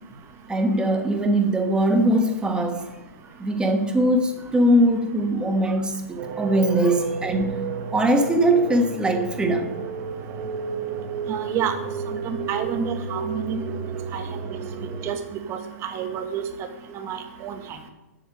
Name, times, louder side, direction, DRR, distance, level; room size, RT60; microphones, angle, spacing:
voice 1, 0.5-2.9 3.4-7.6 7.9-9.8, right 1 dB, 10° right, 1.4 m, -21 dB
sound 1, 6.2-15.1, right 6 dB, 50° right, 1.9 m, -32 dB
voice 2, 11.3-11.7 12.1-13.6 14.1-14.2 14.5-14.6 15.0-15.2 15.5-16.4 16.9-17.6, right 7 dB, 30° right, 1.4 m, -29 dB
7.8 x 7.1 x 8.5 m
hypercardioid pair, 115°, 9 cm